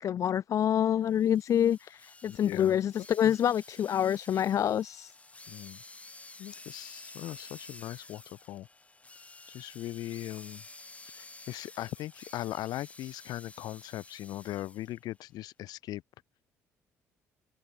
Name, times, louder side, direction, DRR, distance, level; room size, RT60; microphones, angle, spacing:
voice 1, 0.0-5.1, left 9 dB, 50° left, 0.4 m, -27 dB
sound 1, 1.0-15.0, left 2 dB, 20° left, 2.8 m, -51 dB
voice 2, 2.3-2.8 3.2-3.3 5.5-5.8 6.4-8.7 9.5-10.6 11.1-16.0, left 15 dB, 70° left, 2.3 m, -39 dB
open air
hypercardioid pair, 60°, 7 cm